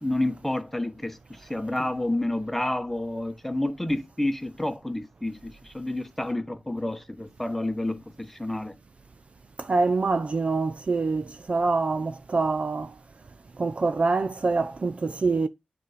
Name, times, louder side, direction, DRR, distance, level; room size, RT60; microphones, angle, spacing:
voice 1, 0.0-8.7, left 1 dB, 10° left, 1.1 m, -29 dB
voice 2, 9.7-12.9 13.6-15.5, right 3 dB, 45° right, 0.6 m, -25 dB
9.4 x 4.0 x 5.0 m
wide cardioid pair, 90°, 3 cm